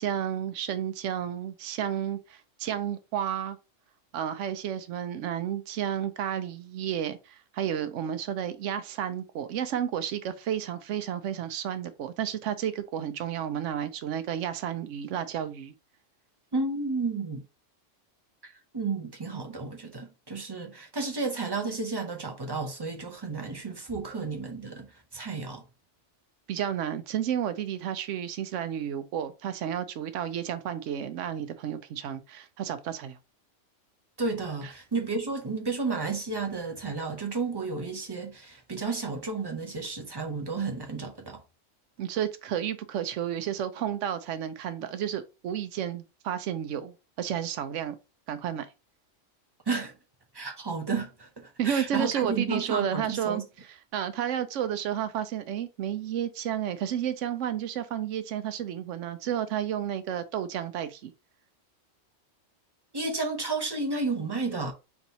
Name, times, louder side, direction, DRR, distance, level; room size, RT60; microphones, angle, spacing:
voice 1, 0.0-3.6 4.1-15.7 26.5-33.2 42.0-48.0 48.3-48.7 51.6-53.4 53.9-61.1, right 9 dB, 75° right, 0.9 m, -31 dB
voice 2, 16.5-17.4 18.4-24.9 25.1-25.6 34.2-41.4 49.7-49.9 50.3-53.4 62.9-64.7, right 4 dB, 30° right, 0.4 m, -32 dB
4.1 x 3.5 x 2.7 m
omnidirectional pair, 1.3 m